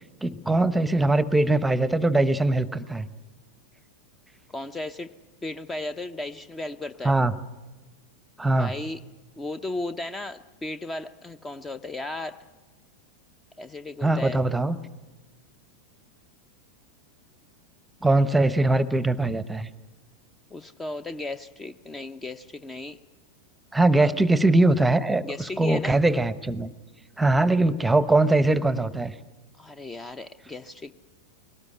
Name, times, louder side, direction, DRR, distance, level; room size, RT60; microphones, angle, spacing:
voice 1, 0.2-3.1 7.0-7.3 8.4-8.7 14.0-14.8 18.0-19.7 23.7-26.7 27.2-29.1, right 2 dB, 5° right, 16 dB, 1.0 m, -21 dB
voice 2, 4.5-5.1 5.4-7.2 8.6-9.0 9.4-12.4 13.6-14.4 20.5-23.0 24.0-24.1 25.2-26.0 29.6-30.9, left 2 dB, 15° left, 13 dB, 0.7 m, -35 dB
22.5 x 18.5 x 9.8 m, 1.2 s
figure-of-eight pair, 90°, 0 cm